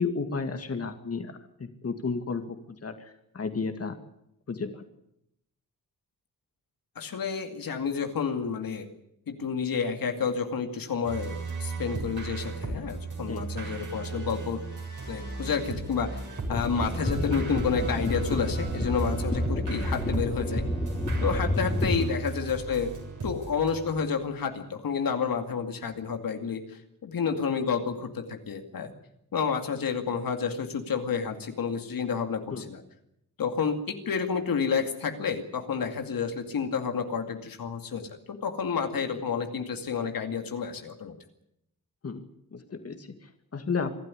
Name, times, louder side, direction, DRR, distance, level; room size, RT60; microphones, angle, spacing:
voice 1, 0.0-4.0 4.5-4.8 13.3-13.4 22.0-22.1 32.5-32.6 42.0-42.2 42.5-44.0, left 4 dB, 45° left, 7 dB, 2.1 m, -33 dB
voice 2, 7.0-8.9 9.3-14.6 15.1-16.1 16.5-20.6 21.2-22.9 23.2-28.9 29.3-32.8 33.4-41.2, left 6 dB, 75° left, 5 dB, 2.4 m, -30 dB
sound 1, 11.0-24.3, right 4 dB, 60° right, 7.2 m, -36 dB
sound 2, 16.5-22.0, left 1 dB, 20° left, 3.0 m, -30 dB
25.0 x 12.5 x 9.8 m, 0.80 s
wide cardioid pair, 100°, 34 cm